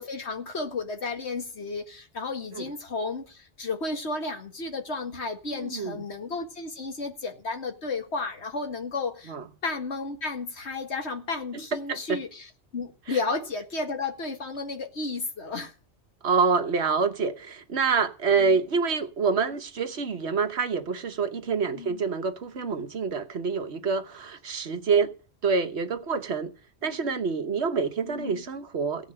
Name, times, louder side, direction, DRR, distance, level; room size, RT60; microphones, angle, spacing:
voice 1, 0.0-9.3 9.6-12.5 12.7-15.7 18.4-18.6 21.7-22.0 26.8-27.0 28.1-28.4, left 3 dB, 70° left, 2.2 m, -33 dB
voice 2, 5.5-6.0 9.3-9.5 11.7-12.2 13.1-13.2 16.2-25.1 25.4-26.5 26.8-29.1, right 5 dB, 70° right, 1.4 m, -27 dB
16.5 x 5.9 x 8.7 m
omnidirectional pair, 1.2 m